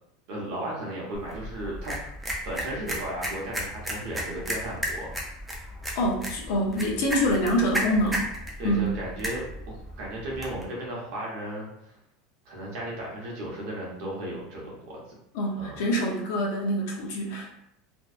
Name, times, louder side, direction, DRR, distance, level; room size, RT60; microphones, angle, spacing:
voice 1, 0.3-1.9 2.4-5.1 8.6-11.9 12.4-15.0 15.6-15.8, right 1 dB, 50° right, -3 dB, 0.9 m, -35 dB
sound 1, 1.1-10.6, equal, 5° right, 0.4 m, -34 dB
voice 2, 6.0-8.2 8.6-8.9 15.3-17.5, equal, 60° left, 0 dB, 0.6 m, -25 dB
2.6 x 2.3 x 2.4 m, 0.76 s
supercardioid pair, 175°, 0 cm